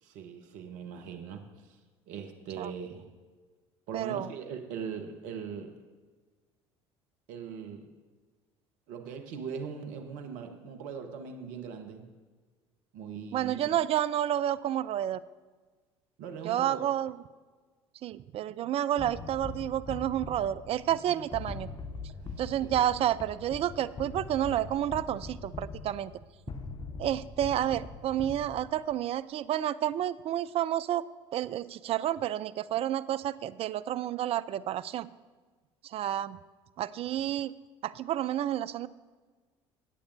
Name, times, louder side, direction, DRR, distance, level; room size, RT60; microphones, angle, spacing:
voice 1, 0.0-1.8 2.1-3.1 3.9-5.7 7.3-7.9 8.9-12.1 12.9-13.6 16.2-16.9 20.9-21.0 22.2-22.8, right 6 dB, 65° right, 6 dB, 1.1 m, -40 dB
voice 2, 3.9-4.3 13.3-15.2 16.4-17.2 18.0-21.7 22.4-26.1 27.0-31.0 31.3-35.1 35.8-36.4 36.8-37.5 37.8-38.9, right 11 dB, 45° right, 16 dB, 0.4 m, -30 dB
sound 1, 19.0-28.9, left 4 dB, 35° left, 1.0 m, -42 dB
18.0 x 8.4 x 2.6 m, 1.4 s
hypercardioid pair, 65°, 14 cm